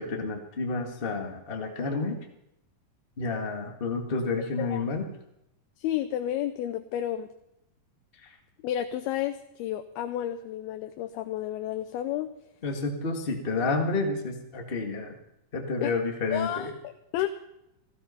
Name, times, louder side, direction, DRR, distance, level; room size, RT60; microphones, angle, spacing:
voice 1, 0.0-2.2 3.2-5.1 8.2-8.3 12.6-15.2 15.5-16.7, left 3 dB, 55° left, 2 dB, 0.6 m, -30 dB
voice 2, 5.8-7.3 8.6-12.3 15.8-15.9 16.3-17.3, left 12 dB, 80° left, 8 dB, 2.6 m, -31 dB
15.5 x 15.0 x 5.6 m, 0.83 s
omnidirectional pair, 4.5 m